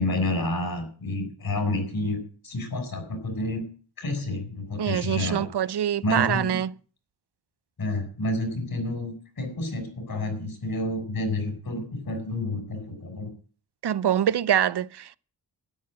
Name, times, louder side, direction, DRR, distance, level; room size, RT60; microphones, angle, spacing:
voice 1, 0.0-3.6 4.0-5.5 6.0-6.6 7.8-13.3, left 1 dB, 60° left, 6.7 m, -29 dB
voice 2, 4.8-6.7 13.8-15.2, right 10 dB, 90° right, 0.7 m, -25 dB
13.0 x 10.5 x 7.6 m
wide cardioid pair, 110°, 39 cm